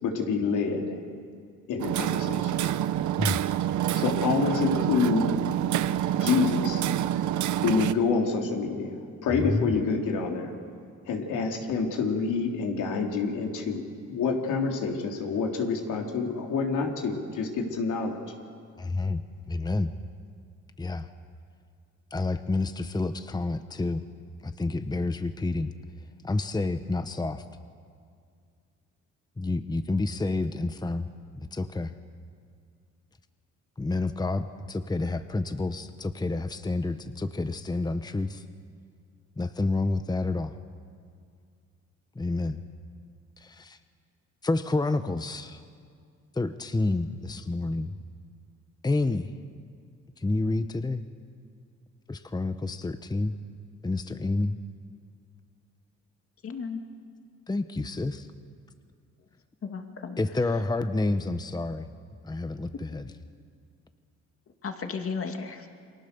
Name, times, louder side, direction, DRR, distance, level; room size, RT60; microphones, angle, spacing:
voice 1, 0.0-1.0 1.7-2.6 3.9-5.4 6.2-6.8 7.6-8.9 9.2-10.5 11.1-13.8 14.1-18.2, left 4 dB, 80° left, 1 dB, 3.6 m, -27 dB
Hammer, 1.8-7.9, right 11 dB, 75° right, 0.9 m, -27 dB
voice 2, 18.8-19.9 20.8-21.1 22.1-24.0 24.4-25.7 26.2-27.4 29.4-31.1 31.4-32.0 33.8-38.4 39.4-40.5 42.1-42.6 43.4-43.8 44.4-45.6 46.3-48.0 48.8-49.3 50.2-51.0 52.1-53.4 53.8-54.6 57.5-58.3 60.2-61.9 62.2-63.1, left 2 dB, 15° left, 10 dB, 1.0 m, -29 dB
voice 3, 56.4-56.8 59.6-60.2 64.6-65.7, left 5 dB, 45° left, 5 dB, 2.4 m, -34 dB
29.5 x 23.0 x 7.0 m, 2.2 s
cardioid pair, 90°, 30 cm